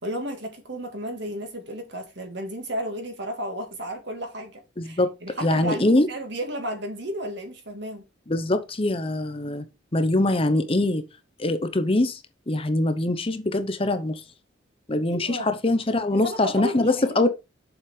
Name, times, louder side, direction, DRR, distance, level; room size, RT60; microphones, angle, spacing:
voice 1, 0.0-8.0 15.1-15.5 16.1-17.3, equal, 60° right, 2.1 m, -33 dB
voice 2, 4.8-5.1 5.4-6.1 8.3-9.6 9.9-11.0 11.4-12.2 12.5-14.2 14.9-17.3, left 2 dB, 30° left, 0.8 m, -23 dB
7.2 x 5.4 x 4.9 m
head